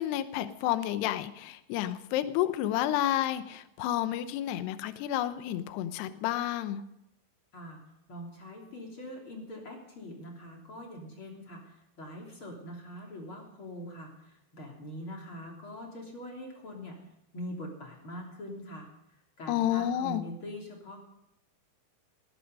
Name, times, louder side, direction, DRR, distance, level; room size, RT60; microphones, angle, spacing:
voice 1, 0.0-6.8 19.5-20.2, left 12 dB, 75° left, 11 dB, 2.6 m, -30 dB
voice 2, 8.1-17.0 17.3-18.9 19.4-21.0, equal, 30° left, 0 dB, 3.3 m, -43 dB
18.5 x 13.0 x 5.4 m, 0.83 s
omnidirectional pair, 5.6 m